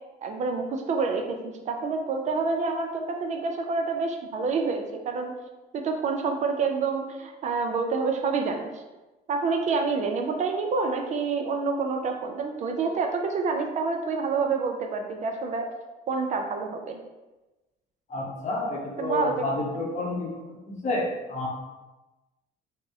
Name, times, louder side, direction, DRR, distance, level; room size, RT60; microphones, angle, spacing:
voice 1, 0.2-5.3 5.7-8.8 9.3-15.7 16.1-17.0 19.0-19.4, right 4 dB, 45° right, 4 dB, 0.4 m, -28 dB
voice 2, 18.1-20.3 20.7-21.5, left 2 dB, 45° left, -1 dB, 0.7 m, -29 dB
3.4 x 2.0 x 2.7 m, 1.1 s
cardioid pair, 110°, 17 cm